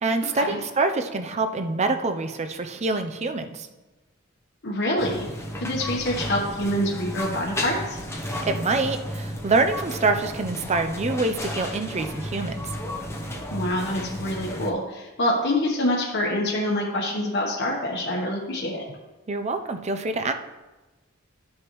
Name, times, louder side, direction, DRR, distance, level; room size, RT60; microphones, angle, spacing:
voice 1, 0.0-3.7 8.5-12.7 19.3-20.3, right 3 dB, 30° right, 7 dB, 0.5 m, -25 dB
voice 2, 4.6-5.3 5.6-8.0 13.5-18.8, left 1 dB, 55° left, -2 dB, 1.1 m, -26 dB
sound 1, 5.0-14.7, equal, 15° left, 0.7 m, -33 dB
12.5 x 6.4 x 3.1 m, 1.2 s
head